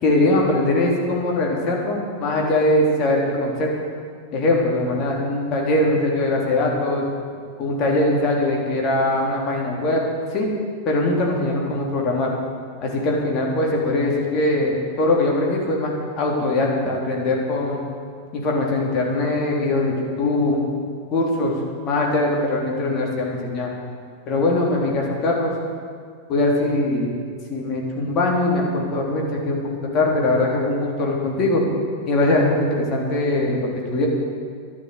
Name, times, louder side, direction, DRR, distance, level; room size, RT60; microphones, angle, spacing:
voice 1, 0.0-3.7 4.3-7.0 7.6-10.0 10.3-10.5 10.9-12.3 12.8-17.8 18.3-20.6 21.1-21.5 21.8-23.7 24.3-25.6 26.3-27.1 27.5-31.6 32.1-34.1, left 2 dB, 35° left, -2 dB, 3.5 m, -21 dB
12.0 x 11.0 x 8.1 m, 2.1 s
figure-of-eight pair, 90°, 0 cm